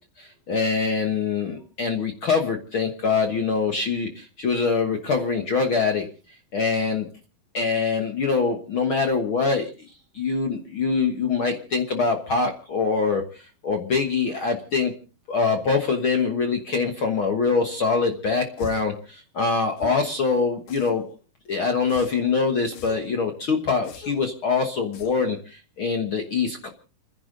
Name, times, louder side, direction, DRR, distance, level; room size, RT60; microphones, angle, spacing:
voice 1, 0.2-6.1 6.5-7.1 7.5-9.7 10.1-14.9 15.3-21.0 21.5-26.7, left 4 dB, 60° left, 5 dB, 1.4 m, -24 dB
sound 1, 18.6-19.0 19.8-20.1 20.7-21.2 21.9-22.3 22.7-23.1 23.8-24.3 24.9-25.3, left 5 dB, 85° left, 3.5 m, -42 dB
30.0 x 10.5 x 3.9 m, 0.36 s
omnidirectional pair, 4.1 m